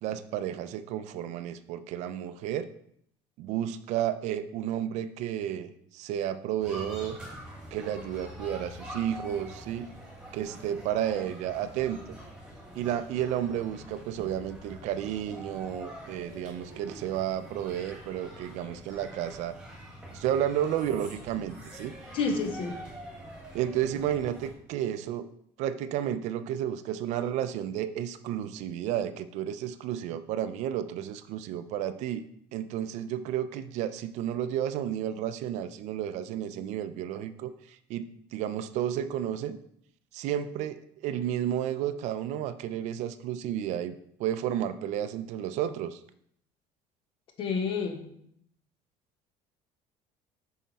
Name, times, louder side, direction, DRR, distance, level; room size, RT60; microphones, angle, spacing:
voice 1, 0.0-2.7 3.4-7.2 7.7-9.9 10.3-12.0 12.7-19.6 20.1-21.9 23.5-25.3 25.6-32.2 32.5-39.6 40.1-46.0, right 10 dB, 60° right, 12 dB, 0.5 m, -32 dB
sound 1, 6.6-24.5, right 1 dB, 5° right, 1.9 m, -45 dB
voice 2, 22.1-22.8 47.4-48.0, left 4 dB, 40° left, 4 dB, 1.2 m, -29 dB
7.4 x 5.7 x 4.1 m, 0.70 s
cardioid pair, 175°, 13 cm